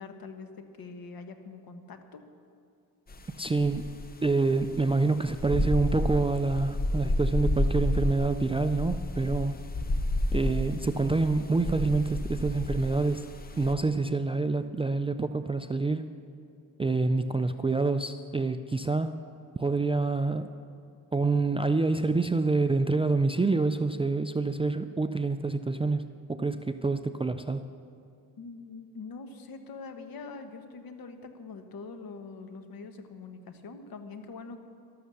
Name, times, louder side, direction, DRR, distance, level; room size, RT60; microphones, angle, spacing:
voice 1, 0.0-2.2 28.4-34.6, left 4 dB, 65° left, 7 dB, 1.3 m, -44 dB
sound 1, 3.1-3.2 3.6-13.7, left 1 dB, 25° left, 0.7 m, -31 dB
voice 2, 3.4-4.0 4.2-9.6 10.3-13.3 13.6-16.2 16.8-19.2 19.6-20.5 21.1-27.6, right 3 dB, 15° right, 10 dB, 0.3 m, -27 dB
12.5 x 12.5 x 7.0 m, 2.4 s
wide cardioid pair, 135°, 38 cm